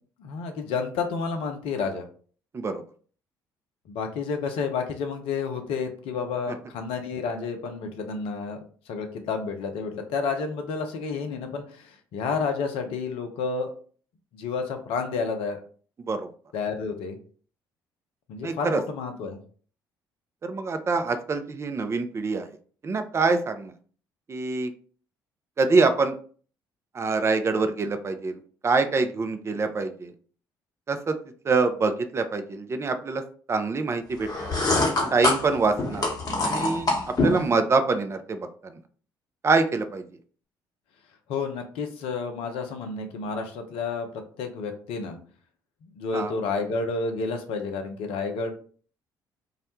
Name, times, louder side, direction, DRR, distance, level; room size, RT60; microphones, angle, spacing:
voice 1, 0.2-2.1 3.9-13.7 14.3-15.6 16.5-17.2 18.3-19.4 41.3-44.1 44.4-45.2 45.8-48.5, left 4 dB, 60° left, 5 dB, 0.5 m, -30 dB
voice 2, 18.4-18.8 20.4-22.5 22.8-23.7 24.3-24.7 25.6-26.1 26.9-30.1 30.9-31.2 31.5-33.2 33.5-34.5 35.1-36.1 36.4-38.7 39.4-40.0 46.1-46.3, right 4 dB, 25° right, 8 dB, 0.4 m, -25 dB
sound 1, 34.2-37.5, left 2 dB, 35° left, 0.9 m, -25 dB
2.3 x 2.1 x 2.9 m, 0.44 s
figure-of-eight pair, 45°, 11 cm